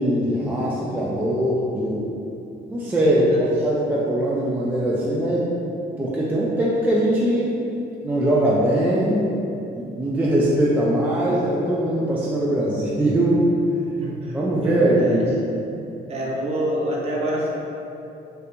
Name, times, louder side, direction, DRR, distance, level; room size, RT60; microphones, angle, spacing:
voice 1, 0.0-2.1 2.7-5.5 6.0-7.5 8.0-9.3 9.7-13.4 14.3-15.2 15.6-15.7, right 1 dB, 10° right, -6 dB, 0.3 m, -21 dB
voice 2, 3.1-3.5 14.0-15.2 16.1-17.5, right 1 dB, 35° right, -3 dB, 0.7 m, -27 dB
3.3 x 2.5 x 2.9 m, 2.7 s
cardioid pair, 110°, 17 cm